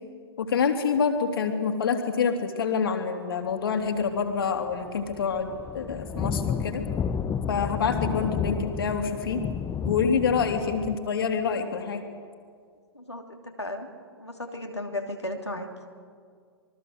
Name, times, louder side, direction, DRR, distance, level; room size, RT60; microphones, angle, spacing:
voice 1, 0.4-5.5 5.7-6.8 7.5-9.4 9.8-12.0, left 6 dB, 60° left, 5 dB, 3.2 m, -26 dB
sound 1, 4.3-4.5 4.7-11.0, left 7 dB, 15° left, 1.1 m, -31 dB
voice 2, 12.9-13.9 14.2-15.7, left 1 dB, 90° left, 2 dB, 2.8 m, -35 dB
27.0 x 23.5 x 8.1 m, 2.1 s
figure-of-eight pair, 105°, 14 cm